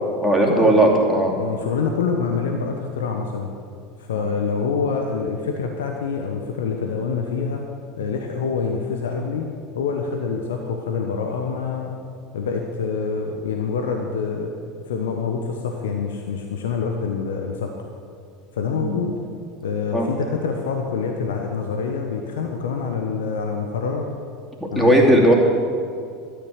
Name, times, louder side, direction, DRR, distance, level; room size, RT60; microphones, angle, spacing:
voice 1, 0.2-1.3 4.2-4.3 18.8-19.0 19.9-20.1 24.6-25.3, right 1 dB, ahead, -2 dB, 2.9 m, -17 dB
voice 2, 1.4-3.5 4.0-7.6 8.0-9.5 9.7-12.0 12.3-14.5 14.9-17.7 18.5-19.1 19.6-24.1 24.7-25.3, left 5 dB, 70° left, 3 dB, 1.1 m, -26 dB
13.0 x 10.0 x 6.6 m, 2.3 s
figure-of-eight pair, 80°, 0 cm